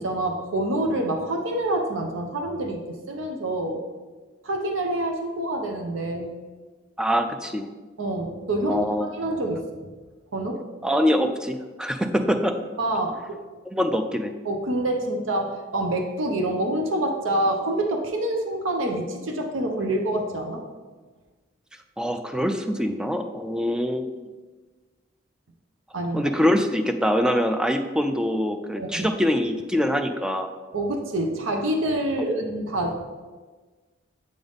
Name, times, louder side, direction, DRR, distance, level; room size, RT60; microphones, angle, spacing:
voice 1, 0.0-3.8 4.4-6.4 8.0-9.6 10.3-10.6 12.8-13.4 14.4-20.6 25.9-26.3 28.8-29.1 30.7-33.1, right 1 dB, 80° right, 3 dB, 0.7 m, -27 dB
voice 2, 7.0-7.7 8.7-9.1 10.8-12.5 13.7-14.3 22.0-24.1 26.1-30.5, equal, 5° right, 6 dB, 0.3 m, -24 dB
7.7 x 3.9 x 3.5 m, 1.3 s
head